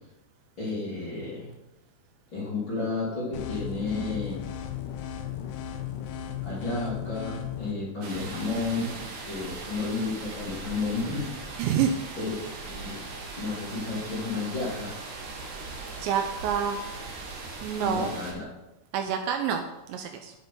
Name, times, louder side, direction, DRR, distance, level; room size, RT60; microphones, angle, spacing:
voice 1, 0.6-1.5 2.3-4.4 6.4-11.3 12.2-13.0 13.4-15.0 17.8-18.5, left 3 dB, 30° left, -7 dB, 2.9 m, -32 dB
sound 1, 3.3-7.7, left 10 dB, 80° left, 3.2 m, -35 dB
sound 2, 8.0-18.3, right 3 dB, 55° right, 2.5 m, -39 dB
voice 2, 11.6-12.0 16.0-16.8 17.6-18.1 18.9-20.3, right 8 dB, 80° right, 5 dB, 2.8 m, -27 dB
10.5 x 10.0 x 3.9 m, 0.94 s
omnidirectional pair, 5.4 m